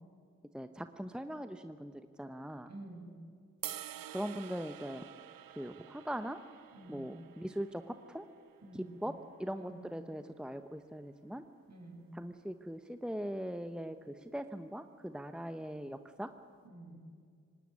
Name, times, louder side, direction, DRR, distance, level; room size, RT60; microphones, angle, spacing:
voice 1, 0.5-1.9 2.2-2.7 4.1-5.0 5.6-6.4 6.9-8.3 8.7-9.1 9.4-11.4 12.1-16.3, equal, ahead, 9 dB, 1.0 m, -40 dB
voice 2, 2.7-3.1 6.7-7.1 8.6-9.0 9.5-9.8 11.7-12.1 16.6-17.0, right 2 dB, 50° right, 1 dB, 6.3 m, -50 dB
sound 1, 3.6-9.9, right 12 dB, 85° right, 0.8 m, -49 dB
18.0 x 18.0 x 9.8 m, 2.1 s
supercardioid pair, 40°, 34 cm